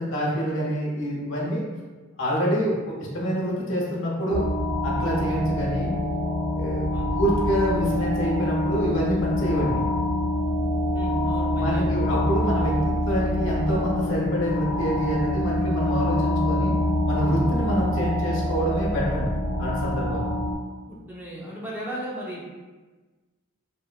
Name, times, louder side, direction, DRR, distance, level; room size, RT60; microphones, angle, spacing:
voice 1, 0.0-1.6 2.2-4.4 4.8-5.9 6.5-6.9 7.2-9.9 11.5-12.8 13.1-16.7 17.1-19.3 19.6-20.3, equal, 65° left, -4 dB, 0.6 m, -26 dB
sound 1, 4.3-20.6, left 1 dB, 80° right, 0.6 m, -25 dB
voice 2, 10.9-12.0 20.9-22.4, equal, 10° right, -5 dB, 0.4 m, -35 dB
2.6 x 2.3 x 2.2 m, 1.3 s
head